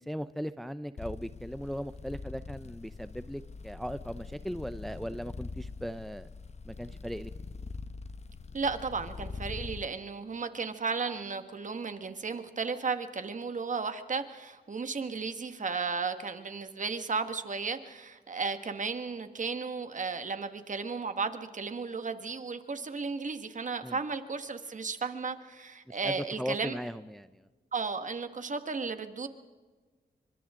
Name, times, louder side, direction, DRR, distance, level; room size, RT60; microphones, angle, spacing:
voice 1, 0.0-6.3 6.6-7.3 23.8-24.0 25.9-27.5, equal, ahead, 12 dB, 0.6 m, -38 dB
sound 1, 1.0-9.9, left 4 dB, 40° left, 1.0 m, -43 dB
voice 2, 8.5-26.8 27.7-29.3, right 4 dB, 45° right, 8 dB, 1.8 m, -34 dB
29.5 x 25.0 x 3.8 m, 1.3 s
cardioid pair, 85°, 17 cm